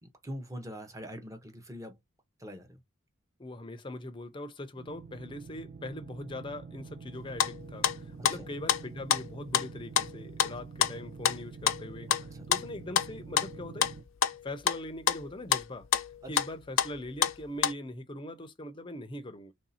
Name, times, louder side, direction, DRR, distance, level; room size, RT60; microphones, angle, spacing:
voice 1, 0.0-2.0 2.4-2.8 8.3-8.5 12.3-12.5 16.2-16.4, equal, 15° right, 0.8 m, -43 dB
voice 2, 3.4-12.1 12.5-13.9 14.4-15.9 16.3-19.5, left 1 dB, 25° left, 0.6 m, -41 dB
sound 1, 4.7-14.0, right 5 dB, 40° right, 0.4 m, -47 dB
sound 2, 7.2-8.0 8.2-8.8 9.1-9.7 10.0-11.4 11.7-14.8 15.1-15.6 15.9-16.5 16.8-17.7, left 9 dB, 85° left, 0.4 m, -28 dB
3.3 x 2.7 x 4.1 m
head